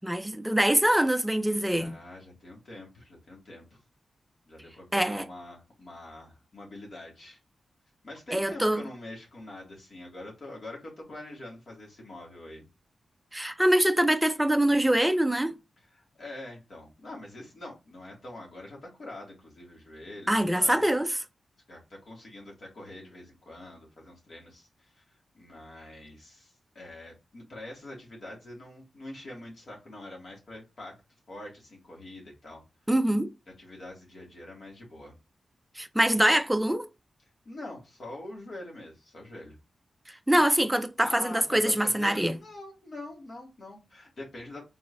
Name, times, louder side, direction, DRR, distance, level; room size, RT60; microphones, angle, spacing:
voice 1, 0.0-2.0 4.9-5.3 8.3-8.8 13.3-15.5 20.3-21.2 32.9-33.3 35.8-36.9 40.3-42.4, right 1 dB, 5° right, 0.5 m, -24 dB
voice 2, 1.6-3.8 4.5-7.4 8.0-12.6 15.8-20.8 21.7-31.0 31.3-32.6 33.6-35.2 37.4-39.6 41.0-44.7, left 1 dB, 55° left, 2.3 m, -44 dB
4.4 x 3.9 x 2.6 m
wide cardioid pair, 110°, 0 cm